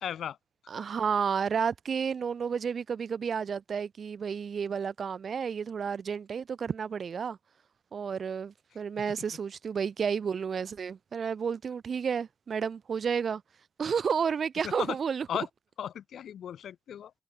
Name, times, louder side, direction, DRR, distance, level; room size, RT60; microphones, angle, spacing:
voice 1, 0.0-0.4 14.6-14.9 15.3-15.5 15.8-17.1, left 9 dB, 80° left, 3.4 m, -35 dB
voice 2, 0.7-7.4 7.9-13.4 13.8-15.5, right 6 dB, 55° right, 0.9 m, -31 dB
cardioid pair, 115°, 0 cm